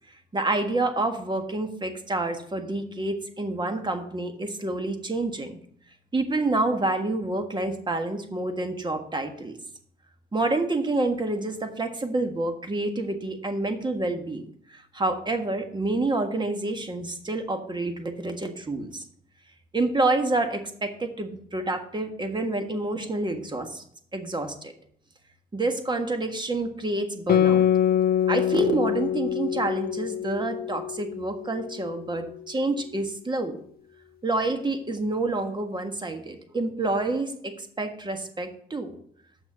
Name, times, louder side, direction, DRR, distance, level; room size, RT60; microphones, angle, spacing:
voice 1, 0.3-5.6 6.1-9.6 10.3-19.0 19.7-23.8 24.1-24.7 25.5-27.7 28.3-33.6 34.2-38.9, right 2 dB, 20° right, 6 dB, 1.6 m, -28 dB
Guitar, 27.3-32.2, left 10 dB, 50° left, 0.4 m, -25 dB
7.3 x 6.1 x 7.2 m, 0.63 s
cardioid pair, 90°, 20 cm